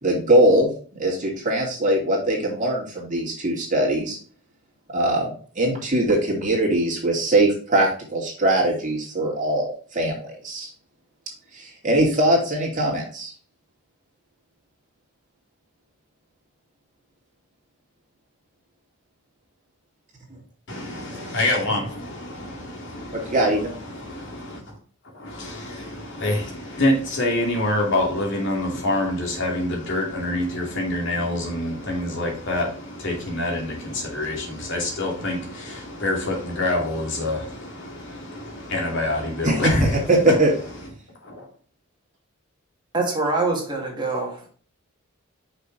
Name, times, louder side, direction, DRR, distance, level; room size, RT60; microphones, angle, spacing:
voice 1, 0.0-4.2 4.9-10.7 11.5-13.3 23.1-23.7 39.4-39.6 40.1-40.5, right 1 dB, 40° right, 2.6 m, -21 dB
voice 2, 20.7-24.8 25.1-40.9 41.2-41.5, left 1 dB, 65° left, 2.5 m, -26 dB
voice 3, 42.9-44.5, right 3 dB, 25° right, 2.1 m, -24 dB
6.0 x 5.9 x 3.4 m
head